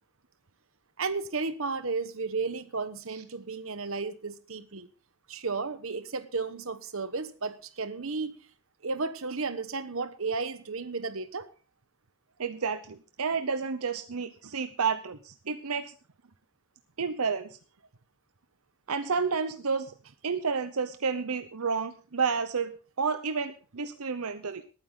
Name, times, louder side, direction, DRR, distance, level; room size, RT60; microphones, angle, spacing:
voice 1, 1.0-4.9 5.3-8.4 8.8-11.5, right 4 dB, 65° right, 13 dB, 1.1 m, -33 dB
voice 2, 12.4-15.9 17.0-17.5 18.9-19.9 20.2-22.7 23.0-24.6, right 5 dB, 80° right, 10 dB, 0.9 m, -30 dB
19.5 x 9.4 x 3.8 m, 0.36 s
head